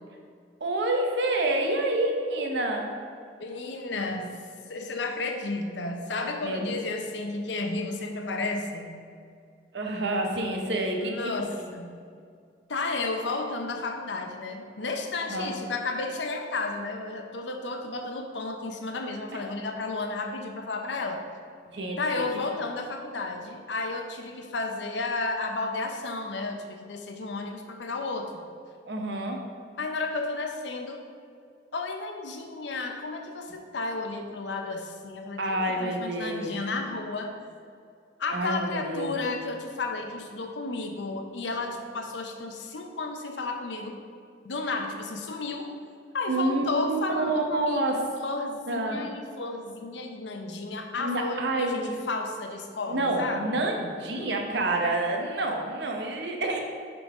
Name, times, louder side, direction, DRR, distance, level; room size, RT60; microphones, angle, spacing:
voice 1, 0.6-2.9 6.4-6.7 9.7-11.3 15.3-15.5 19.4-19.5 21.7-22.2 28.8-29.4 35.4-36.6 38.3-39.1 46.3-48.0 48.7-49.0 51.0-51.9 52.9-56.6, right 2 dB, 75° right, 2 dB, 0.9 m, -28 dB
voice 2, 3.4-4.3 4.7-9.0 11.0-12.0 12.7-21.2 22.0-28.4 29.8-31.0 31.7-37.3 38.2-44.0 44.4-45.7 46.1-53.6, left 3 dB, 85° left, 4 dB, 0.7 m, -32 dB
6.9 x 3.9 x 4.8 m, 2.3 s
head